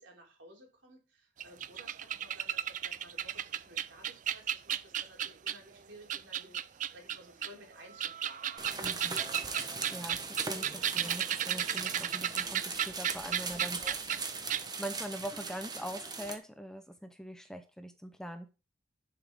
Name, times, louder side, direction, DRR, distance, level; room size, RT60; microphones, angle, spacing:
voice 1, 0.0-8.7 13.5-13.9, right 1 dB, 75° right, 0 dB, 3.5 m, -55 dB
sound 1, 1.4-5.7 6.1-7.5 7.9-14.2 14.5-14.6, right 10 dB, 40° right, 0.4 m, -34 dB
sound 2, 8.6-16.4, right 4 dB, 20° right, 1.1 m, -39 dB
voice 2, 8.8-9.2 9.5-14.0 14.2-18.5, equal, 5° left, 8 dB, 0.6 m, -43 dB
10.5 x 5.9 x 3.6 m, 0.31 s
head